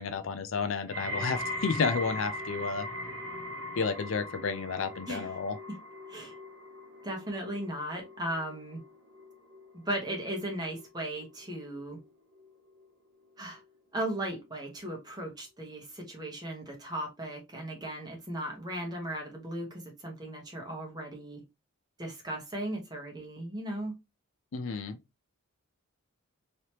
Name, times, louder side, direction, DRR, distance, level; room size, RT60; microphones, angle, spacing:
voice 1, 0.0-2.9 3.8-5.6 24.5-25.0, left 5 dB, 65° left, 0.5 m, -31 dB
sound 1, 0.9-12.0 12.3-12.9 13.6-13.7, left 1 dB, 70° right, 0.8 m, -40 dB
voice 2, 7.0-8.8 9.9-12.0 13.4-13.6 13.9-21.4 22.0-23.9, right 1 dB, 20° right, 1.0 m, -37 dB
3.2 x 2.9 x 2.9 m
head